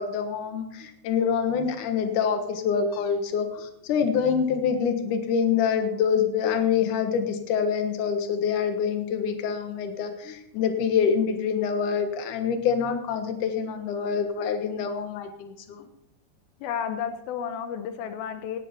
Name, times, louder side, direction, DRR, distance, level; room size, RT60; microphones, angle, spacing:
voice 1, 0.0-15.9, left 7 dB, 65° left, 6 dB, 2.8 m, -26 dB
voice 2, 16.6-18.6, left 8 dB, 85° left, 8 dB, 2.8 m, -32 dB
18.5 x 11.0 x 4.4 m, 0.76 s
omnidirectional pair, 4.2 m